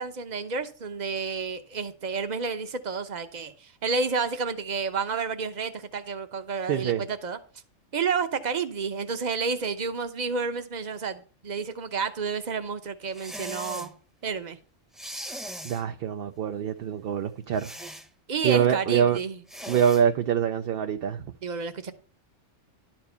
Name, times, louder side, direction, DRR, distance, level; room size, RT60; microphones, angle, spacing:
voice 1, 0.0-7.4 7.9-13.9 14.2-14.6 18.3-19.4 21.4-21.9, right 5 dB, 40° right, 0.9 m, -30 dB
voice 2, 6.7-7.0 15.6-17.7 18.4-19.2 19.7-21.2, right 8 dB, 60° right, 0.7 m, -24 dB
sound 1, 13.1-13.9 14.9-15.8 17.6-18.1 19.5-20.0, equal, ahead, 0.9 m, -39 dB
11.5 x 4.4 x 6.9 m
omnidirectional pair, 1.3 m